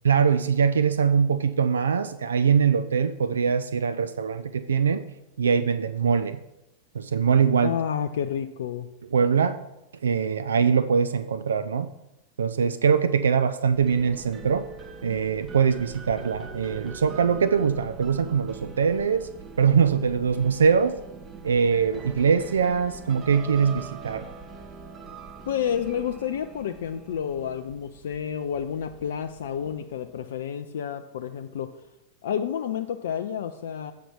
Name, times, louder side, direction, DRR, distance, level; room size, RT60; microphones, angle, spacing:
voice 1, 0.0-5.0 5.4-6.4 6.9-7.7 9.1-9.6 10.0-11.9 12.4-14.7 15.0-19.3 19.6-21.0 21.4-24.3, right 6 dB, 70° right, 11 dB, 0.4 m, -22 dB
voice 2, 7.6-8.9 25.5-31.8 32.2-33.9, left 8 dB, 60° left, 7 dB, 0.4 m, -30 dB
sound 1, 13.7-30.2, right 4 dB, 25° right, 1.0 m, -43 dB
8.3 x 5.0 x 5.9 m, 0.90 s
figure-of-eight pair, 90°, 0 cm